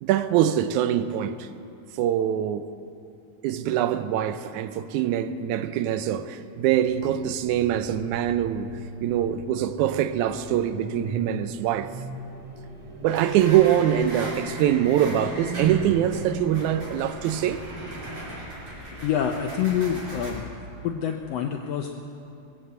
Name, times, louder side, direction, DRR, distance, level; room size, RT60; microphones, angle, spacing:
voice 1, 0.0-1.5 1.9-2.7 3.4-8.7 9.0-11.9 13.0-17.6, right 11 dB, 80° right, 1.9 m, -24 dB
sound 1, 6.8-16.6, right 2 dB, 15° right, 1.8 m, -39 dB
sound 2, 13.1-20.3, right 1 dB, 40° right, 5.3 m, -38 dB
voice 2, 19.0-20.4 20.8-21.9, left 8 dB, 85° left, 1.4 m, -26 dB
19.5 x 8.1 x 7.8 m
omnidirectional pair, 3.7 m